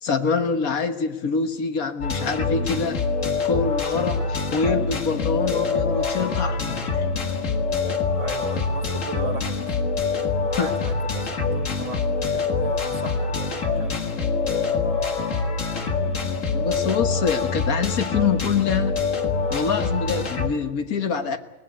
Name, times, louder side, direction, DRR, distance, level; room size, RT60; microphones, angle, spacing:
voice 1, 0.0-3.0 3.4-7.1 10.6-10.7 16.5-19.0 19.5-21.4, left 5 dB, 80° left, 8 dB, 1.8 m, -25 dB
sound 1, 2.0-20.5, left 4 dB, 60° left, 2.2 m, -25 dB
voice 2, 8.1-9.8 10.1-14.0 21.2-21.4, right 4 dB, 60° right, 7 dB, 2.1 m, -37 dB
22.5 x 18.5 x 8.2 m, 1.0 s
omnidirectional pair, 1.5 m